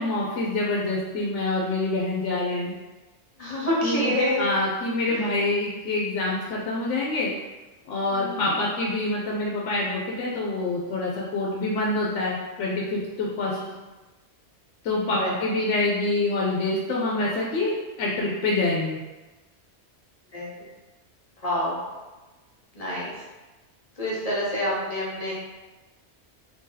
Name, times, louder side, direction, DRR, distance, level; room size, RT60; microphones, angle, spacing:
voice 1, 0.0-2.7 3.8-4.1 4.4-7.3 7.9-13.6 14.8-19.0, left 2 dB, 85° left, -4 dB, 0.9 m, -26 dB
voice 2, 3.4-4.5 5.1-5.2 8.1-8.5 13.4-13.7 15.0-15.3 20.3-20.5 21.4-21.8 22.7-23.1 24.0-25.3, equal, 35° left, -7 dB, 1.0 m, -27 dB
2.9 x 2.7 x 3.8 m, 1.2 s
omnidirectional pair, 1.2 m